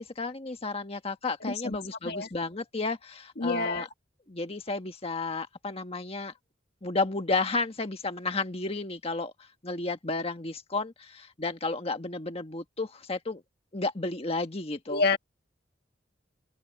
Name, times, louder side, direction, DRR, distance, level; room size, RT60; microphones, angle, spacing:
voice 1, 0.0-3.9 4.3-6.3 6.8-9.3 9.6-13.4 13.7-15.0, left 3 dB, 30° left, 1.5 m, -32 dB
voice 2, 1.4-1.8 2.0-2.3 3.4-3.9 14.9-15.2, left 3 dB, 60° left, 1.6 m, -28 dB
head